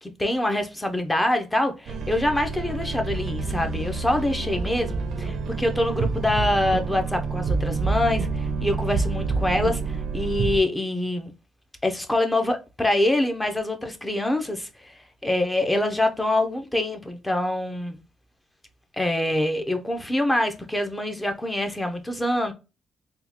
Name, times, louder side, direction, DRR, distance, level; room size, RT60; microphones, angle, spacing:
voice 1, 0.0-11.3 11.8-18.0 18.9-22.5, left 1 dB, 10° left, 0.8 m, -25 dB
sound 1, 1.9-10.6, right 4 dB, 65° right, 0.6 m, -28 dB
3.6 x 2.3 x 3.0 m
cardioid pair, 90°, 0 cm